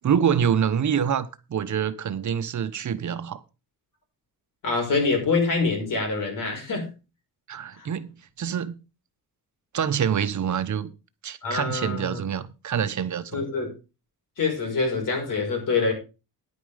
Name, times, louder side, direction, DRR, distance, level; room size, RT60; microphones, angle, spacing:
voice 1, 0.0-3.4 7.5-8.8 9.7-10.9 11.2-13.5, right 8 dB, 55° right, 1.1 m, -26 dB
voice 2, 4.6-6.9 7.7-7.9 11.4-12.3 13.3-13.7 14.4-15.9, left 4 dB, 65° left, 5.7 m, -25 dB
10.0 x 9.1 x 5.0 m
wide cardioid pair, 130°, 34 cm